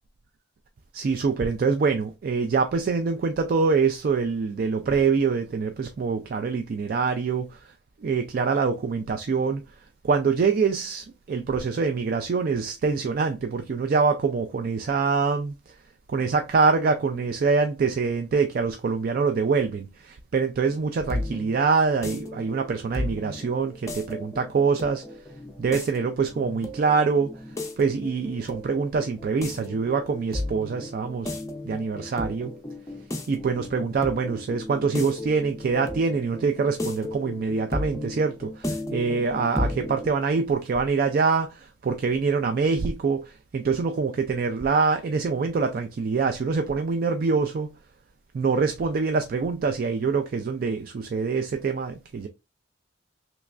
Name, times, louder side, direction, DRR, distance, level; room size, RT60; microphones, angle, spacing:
voice 1, 0.9-7.6 8.0-9.6 10.0-15.5 16.1-25.0 25.6-27.4 27.8-32.5 33.3-47.7 48.3-52.3, right 5 dB, 50° right, 0.3 m, -25 dB
sound 1, 20.7-40.1, left 1 dB, 15° left, 0.5 m, -34 dB
3.3 x 3.0 x 2.4 m
head